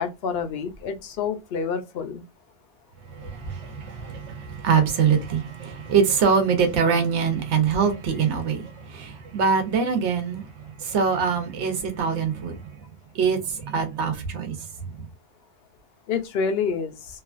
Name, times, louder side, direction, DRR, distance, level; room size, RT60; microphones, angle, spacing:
voice 1, 0.0-2.2 16.1-17.0, left 6 dB, 60° left, 0.7 m, -27 dB
voice 2, 3.0-12.8 13.1-15.0, right 6 dB, 65° right, 1.0 m, -24 dB
2.9 x 2.3 x 2.4 m
omnidirectional pair, 1.3 m